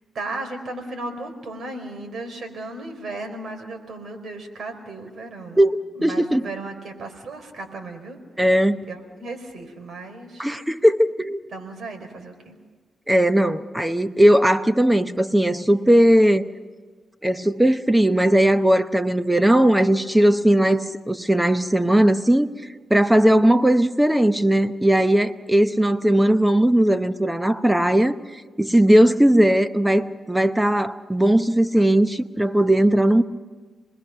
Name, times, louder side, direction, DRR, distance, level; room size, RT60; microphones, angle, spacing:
voice 1, 0.1-5.6 5.9-8.2 8.9-10.5 11.5-12.6, right 2 dB, 70° right, 4.2 m, -35 dB
voice 2, 5.6-6.5 8.4-8.8 10.4-11.4 13.1-16.4 17.2-22.5 22.9-28.1 28.6-33.2, right 1 dB, 10° right, 0.9 m, -18 dB
28.5 x 20.5 x 5.8 m
cardioid pair, 80°, 0 cm